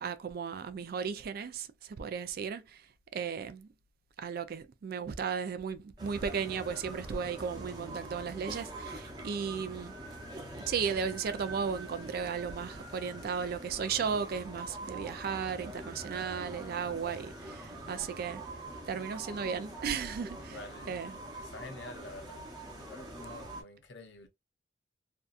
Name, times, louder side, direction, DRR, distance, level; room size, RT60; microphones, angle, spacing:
voice 1, 0.0-2.9 3.1-3.7 4.2-9.9 10.7-18.4 18.9-21.1, right 6 dB, 55° right, 0.3 m, -35 dB
sound 1, 6.0-23.6, right 1 dB, 25° right, 0.8 m, -44 dB
voice 2, 20.4-20.9 21.4-22.4 22.8-24.3, left 3 dB, 70° left, 0.6 m, -48 dB
2.6 x 2.3 x 2.4 m
head